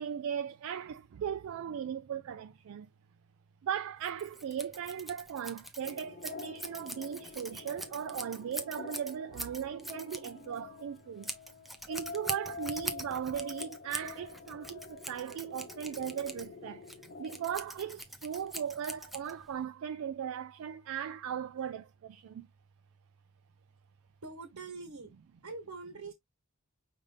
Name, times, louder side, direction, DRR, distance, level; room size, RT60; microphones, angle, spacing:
voice 1, 0.0-2.9 3.6-11.3 11.9-16.8 17.2-22.5, right 8 dB, 65° right, 0.3 m, -38 dB
Scissors, 4.0-19.6, equal, ahead, 0.5 m, -43 dB
sound 1, 5.8-17.6, left 4 dB, 45° left, 0.6 m, -47 dB
voice 2, 24.2-25.1 25.4-26.1, right 3 dB, 90° right, 1.3 m, -44 dB
5.2 x 2.6 x 3.2 m
head